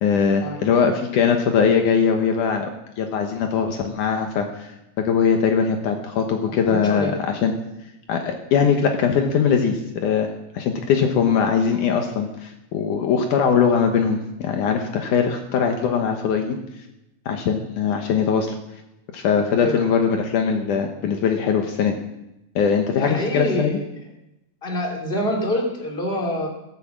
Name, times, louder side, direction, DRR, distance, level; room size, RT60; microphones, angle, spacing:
voice 1, 0.0-2.7 3.0-4.7 5.0-7.5 8.1-10.3 10.5-16.6 17.3-18.6 19.1-22.0 22.6-23.8, left 6 dB, 70° left, 4 dB, 2.5 m, -21 dB
voice 2, 6.7-7.1 19.6-19.9 23.0-23.8 24.6-26.5, left 1 dB, 15° left, 0 dB, 2.9 m, -25 dB
18.0 x 8.1 x 7.4 m, 0.90 s
omnidirectional pair, 3.9 m